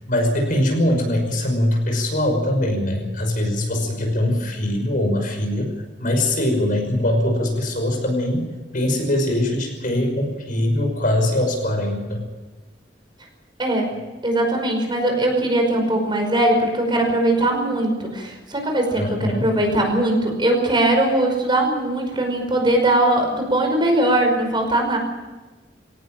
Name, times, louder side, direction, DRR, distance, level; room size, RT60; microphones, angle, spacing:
voice 1, 0.1-5.7 6.0-12.2 19.0-19.5, left 1 dB, 50° left, 3 dB, 5.7 m, -22 dB
voice 2, 13.6-13.9 14.2-25.0, right 1 dB, 25° right, 3 dB, 5.3 m, -20 dB
22.5 x 18.5 x 7.7 m, 1.2 s
head